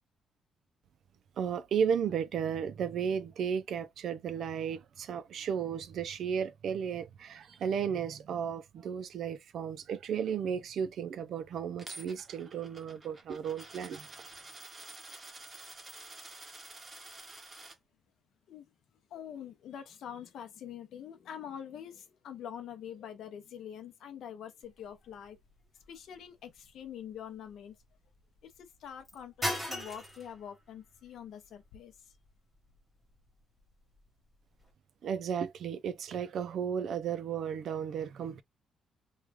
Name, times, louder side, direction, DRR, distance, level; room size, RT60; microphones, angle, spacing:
voice 1, 1.4-14.1 35.0-38.4, right 7 dB, 50° right, 0.4 m, -34 dB
Coin (dropping), 11.8-17.8, right 2 dB, 20° right, 0.7 m, -49 dB
voice 2, 19.1-25.4 25.9-27.7 28.4-31.9, left 9 dB, 60° left, 0.7 m, -45 dB
sound 1, 24.6-34.7, equal, ahead, 1.1 m, -44 dB
3.1 x 2.3 x 3.4 m
cardioid pair, 175°, 0 cm